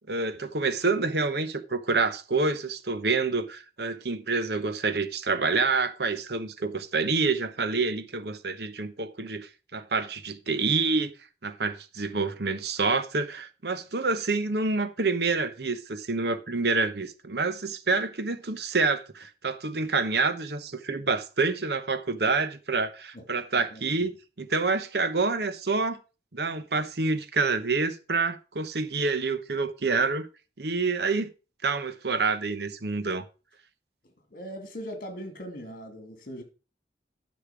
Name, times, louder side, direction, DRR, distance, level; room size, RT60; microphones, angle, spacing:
voice 1, 0.1-11.1 11.4-24.1 24.4-26.0 26.3-30.3 30.6-31.3 31.6-33.2, right 4 dB, 65° right, 1.0 m, -27 dB
voice 2, 23.5-24.1 34.3-36.4, equal, 50° left, 2.4 m, -40 dB
10.0 x 6.6 x 5.0 m
head